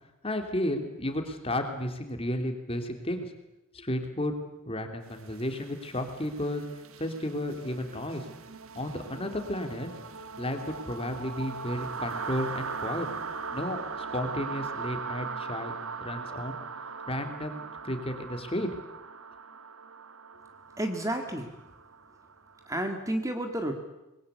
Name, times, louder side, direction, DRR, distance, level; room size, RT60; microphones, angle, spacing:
voice 1, 0.2-3.3 3.7-4.3 4.7-6.6 7.0-8.2 8.7-9.9 10.4-13.1 13.5-13.8 14.1-15.7 16.0-16.6 17.1-18.7, left 1 dB, 25° left, 6 dB, 2.9 m, -33 dB
sound 1, 5.2-22.9, right 5 dB, 80° right, 1.4 m, -40 dB
voice 2, 20.8-21.5 22.7-23.8, right 1 dB, 15° right, 5 dB, 2.1 m, -31 dB
25.5 x 21.5 x 8.3 m, 0.95 s
head